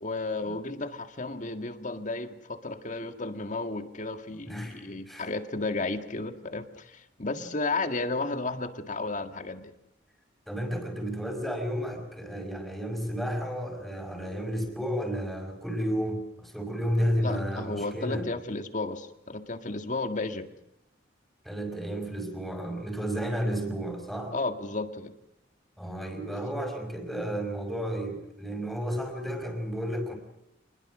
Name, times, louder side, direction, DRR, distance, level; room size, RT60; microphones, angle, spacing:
voice 1, 0.0-9.7 17.2-20.5 24.3-25.1, left 3 dB, 40° left, 8 dB, 1.9 m, -33 dB
voice 2, 4.5-5.3 10.5-18.3 21.5-24.4 25.8-30.2, equal, ahead, 4 dB, 5.4 m, -32 dB
27.0 x 21.0 x 6.3 m, 0.87 s
head